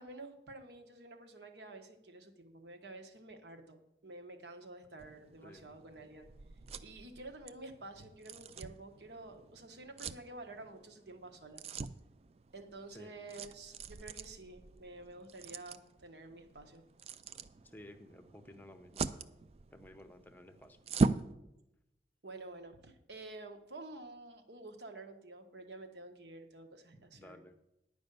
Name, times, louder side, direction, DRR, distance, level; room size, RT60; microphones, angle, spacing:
voice 1, 0.0-6.3 6.8-11.6 12.5-16.8 22.2-27.4, right 2 dB, 70° right, 5 dB, 1.2 m, -50 dB
sound 1, 5.0-21.3, right 4 dB, 35° right, 0.3 m, -41 dB
voice 2, 17.6-19.3 19.7-20.8 27.1-27.6, left 1 dB, 10° left, 8 dB, 0.7 m, -55 dB
10.5 x 5.2 x 6.8 m, 0.87 s
head